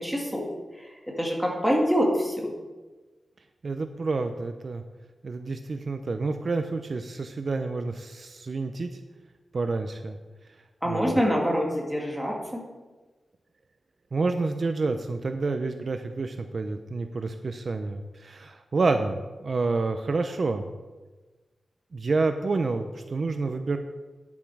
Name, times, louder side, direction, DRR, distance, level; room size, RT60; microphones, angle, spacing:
voice 1, 0.0-0.4 1.2-2.5 10.8-12.6, equal, ahead, -2 dB, 2.0 m, -25 dB
voice 2, 3.6-4.8 5.2-9.0 9.5-10.2 10.8-11.3 14.1-20.7 21.9-23.8, right 3 dB, 50° right, 7 dB, 0.5 m, -29 dB
10.0 x 7.2 x 4.8 m, 1.2 s
wide cardioid pair, 125°, 0 cm